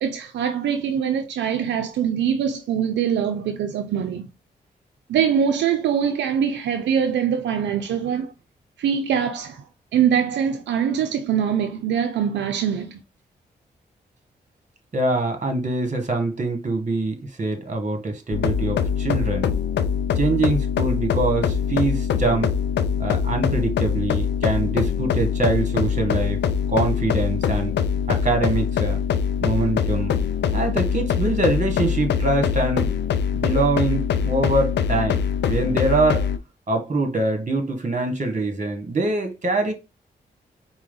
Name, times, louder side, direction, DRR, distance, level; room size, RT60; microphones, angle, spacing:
voice 1, 0.0-4.3 5.1-8.3 8.8-9.7 9.9-13.0, right 8 dB, 80° right, 0.5 m, -23 dB
voice 2, 14.9-19.5 20.2-22.5 23.0-26.4 26.7-27.7 28.1-29.0 29.4-30.1 30.5-32.9 33.3-36.3 36.7-39.7, right 2 dB, 40° right, 1.3 m, -24 dB
sound 1, 18.3-36.4, left 7 dB, 75° left, 0.4 m, -23 dB
4.5 x 2.2 x 3.8 m
supercardioid pair, 40°, 18 cm